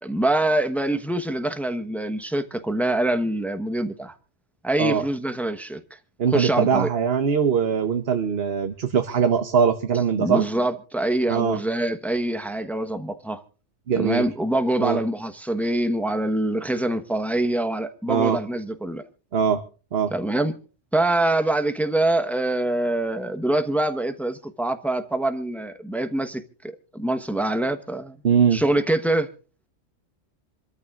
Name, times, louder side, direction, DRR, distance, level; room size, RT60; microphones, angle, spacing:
voice 1, 0.0-4.1 4.6-5.8 6.3-6.9 10.2-13.4 14.0-19.0 20.1-20.5 20.9-28.2 28.5-29.3, right 1 dB, ahead, 1.0 m, -25 dB
voice 2, 6.2-10.4 11.3-11.6 13.9-14.2 14.8-15.0 18.1-18.4 19.3-19.6 19.9-20.1 28.2-28.6, right 7 dB, 55° right, 1.1 m, -21 dB
27.0 x 13.5 x 2.4 m
omnidirectional pair, 1.2 m